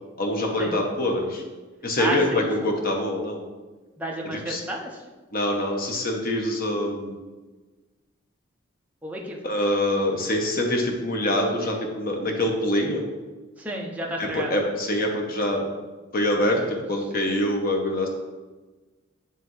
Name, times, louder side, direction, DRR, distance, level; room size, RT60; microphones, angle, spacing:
voice 1, 0.2-1.4 1.8-3.4 4.2-4.6 5.3-7.1 9.4-13.0 14.2-15.6 16.1-18.1, left 1 dB, 50° left, 2 dB, 1.0 m, -25 dB
voice 2, 2.0-2.5 4.0-4.9 9.0-9.4 13.6-14.5, right 1 dB, 10° right, -1 dB, 0.7 m, -31 dB
9.2 x 3.4 x 3.1 m, 1.3 s
head